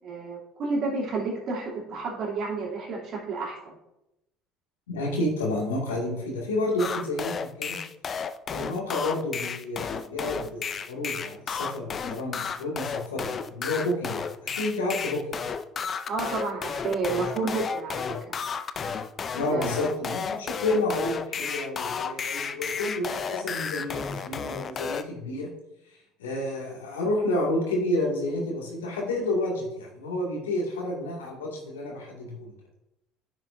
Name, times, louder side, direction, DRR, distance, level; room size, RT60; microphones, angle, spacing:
voice 1, 0.0-3.8 16.1-18.4 19.5-19.7, right 3 dB, 55° right, -3 dB, 2.8 m, -31 dB
voice 2, 4.9-7.8 8.5-14.2 14.4-15.4 19.3-25.5 25.9-32.5, left 1 dB, 90° left, -2 dB, 2.1 m, -30 dB
sound 1, 6.8-25.0, left 6 dB, 40° left, 0.5 m, -32 dB
10.5 x 6.1 x 2.6 m, 0.88 s
hypercardioid pair, 70°, 0 cm